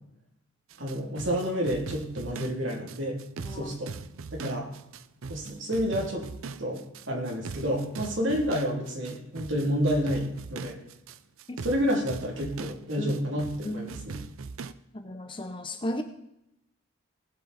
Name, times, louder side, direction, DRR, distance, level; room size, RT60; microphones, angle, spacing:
sound 1, 0.7-14.7, right 4 dB, 75° right, 0.5 m, -40 dB
voice 1, 0.8-3.2 3.5-3.9 4.3-4.7 5.3-6.3 6.6-6.8 7.1-10.8 11.6-14.2, equal, 60° right, -1 dB, 3.1 m, -29 dB
voice 2, 13.6-14.0 14.9-16.0, left 1 dB, 25° left, 7 dB, 0.8 m, -34 dB
19.0 x 7.6 x 4.2 m, 0.82 s
head